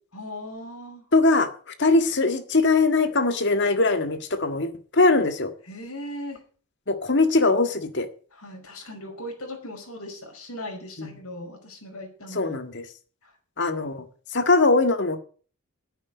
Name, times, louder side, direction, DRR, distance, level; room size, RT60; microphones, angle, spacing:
voice 1, 0.1-1.0 5.7-6.4 8.3-12.6 13.2-13.3, left 1 dB, 75° left, 2 dB, 5.7 m, -38 dB
voice 2, 1.1-1.5 1.8-5.5 6.9-8.1 11.0-11.1 12.3-12.8 13.6-14.0 14.3-15.2, left 3 dB, 50° left, 8 dB, 1.7 m, -21 dB
10.5 x 9.2 x 8.1 m, 0.42 s
head